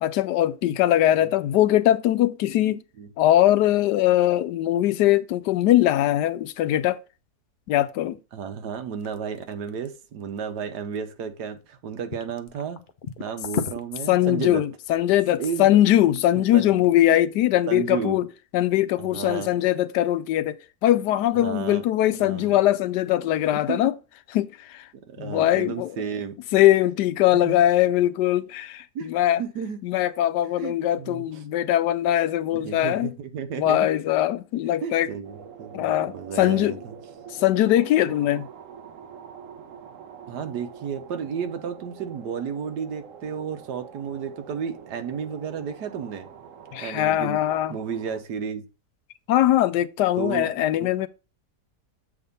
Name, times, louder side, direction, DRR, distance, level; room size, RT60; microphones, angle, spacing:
voice 1, 0.0-2.8 3.2-7.0 7.7-8.2 14.1-18.3 18.5-23.9 24.3-24.9 25.2-25.9 26.5-29.4 29.8-33.1 33.6-35.1 35.7-36.8 37.3-38.5 46.7-47.8 49.3-51.1, left 13 dB, 85° left, 1.2 m, -21 dB
voice 2, 8.3-12.8 13.2-14.6 15.4-15.8 16.5-16.8 17.7-18.2 19.0-19.5 21.3-21.8 22.2-22.6 23.5-23.9 25.1-26.3 27.3-27.6 28.9-29.1 29.4-29.8 30.6-31.2 32.5-33.9 34.8-36.9 40.3-46.3 46.8-47.4 47.7-48.6 50.2-50.8, right 7 dB, 85° right, 1.5 m, -32 dB
sound 1, 9.0-11.7 12.1-16.9, left 6 dB, 65° left, 0.5 m, -36 dB
sound 2, 35.2-48.2, right 8 dB, 60° right, 1.1 m, -45 dB
7.6 x 3.6 x 5.2 m
omnidirectional pair, 1.8 m